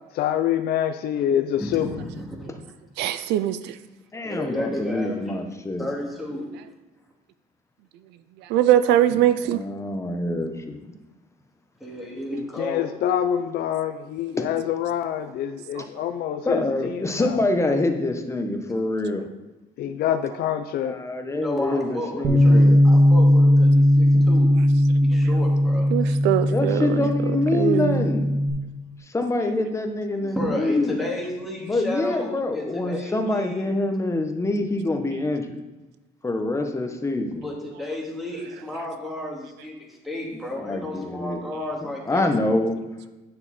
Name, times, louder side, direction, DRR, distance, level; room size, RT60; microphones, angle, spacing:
voice 1, 0.1-1.9 12.6-17.4 19.8-21.0, left 10 dB, 65° left, 8 dB, 0.6 m, -26 dB
voice 2, 1.6-2.5 4.2-5.4 5.8-6.5 11.8-12.9 21.3-24.5 25.0-25.9 30.1-33.8 37.4-42.3, left 1 dB, ahead, -2 dB, 2.6 m, -32 dB
voice 3, 3.0-3.8 8.4-9.6 15.7-16.0 25.9-27.0 27.5-28.1, right 12 dB, 85° right, 12 dB, 0.5 m, -22 dB
voice 4, 4.1-5.9 9.5-10.8 14.4-14.5 16.4-19.3 20.8-22.8 24.1-24.3 26.5-28.3 29.1-31.0 31.6-35.6 36.2-37.5 40.6-41.5 42.1-42.8, left 2 dB, 15° left, 4 dB, 1.1 m, -25 dB
Bass guitar, 22.2-28.5, left 1 dB, 40° right, 2.1 m, -18 dB
9.7 x 6.6 x 4.3 m, 1.1 s
cardioid pair, 110°, 17 cm